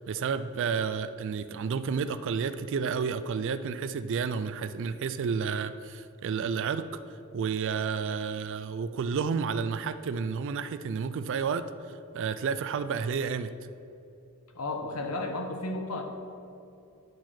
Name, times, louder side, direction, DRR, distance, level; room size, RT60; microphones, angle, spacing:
voice 1, 0.0-11.6 12.1-13.5, right 6 dB, 60° right, 12 dB, 0.3 m, -31 dB
voice 2, 14.5-16.0, left 2 dB, 85° left, 4 dB, 1.0 m, -33 dB
9.2 x 4.9 x 5.7 m, 2.7 s
head